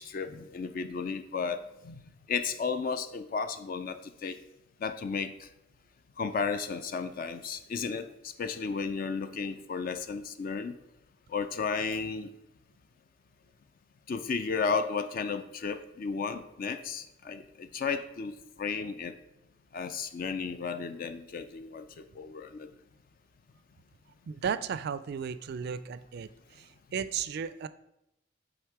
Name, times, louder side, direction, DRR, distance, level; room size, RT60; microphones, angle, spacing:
voice 1, 0.0-1.9 2.3-4.4 4.8-5.5 6.2-10.7 11.3-12.3 14.1-19.1 19.7-22.7, left 5 dB, 50° left, 10 dB, 0.4 m, -34 dB
voice 2, 24.3-26.3 26.9-27.7, right 7 dB, 60° right, 15 dB, 0.3 m, -34 dB
7.9 x 3.6 x 4.7 m, 0.84 s
head